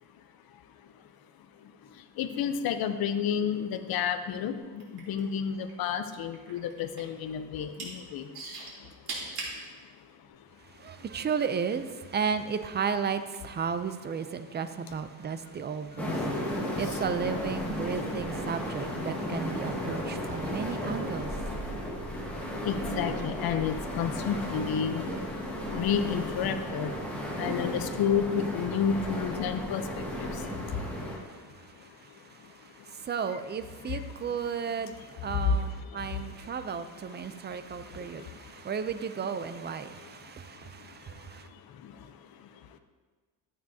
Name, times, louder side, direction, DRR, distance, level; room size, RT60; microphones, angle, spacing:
voice 1, 1.6-8.3 8.6-9.3 9.9-10.4 16.5-16.8 18.6-18.7 20.2-20.6 21.5-31.2 31.5-33.1 33.8-34.0 34.3-34.4 35.2-36.3 37.1-38.7 39.9-42.8, left 7 dB, 60° left, 9 dB, 0.8 m, -33 dB
sound 1, 4.7-5.9 6.1-7.2 7.6-7.9 8.3-9.6 10.3-10.4, right 3 dB, 65° right, 3.0 m, -38 dB
voice 2, 10.7-21.3 30.6-41.5, right 6 dB, 25° right, 10 dB, 0.5 m, -34 dB
sound 2, 16.0-31.2, equal, 5° left, 2.0 m, -34 dB
12.0 x 8.6 x 2.8 m, 1.4 s
cardioid pair, 115°, 40 cm